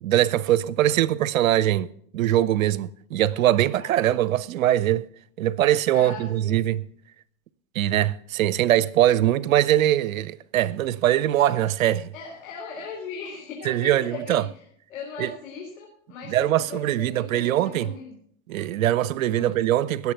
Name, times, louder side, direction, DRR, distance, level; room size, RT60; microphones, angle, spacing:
voice 1, 0.0-5.0 5.4-6.8 7.7-12.1 13.6-14.4 15.2-15.3 16.3-17.9 18.5-20.1, right 12 dB, 80° right, 0.8 m, -22 dB
sound 1, 3.0-4.2 5.1-5.2 5.6-5.7, right 3 dB, 40° right, 4.3 m, -48 dB
voice 2, 5.9-6.6 12.1-14.6 14.9-18.1 19.3-19.6, left 5 dB, 85° left, 3.9 m, -38 dB
18.0 x 7.1 x 5.9 m
hypercardioid pair, 110°, 40 cm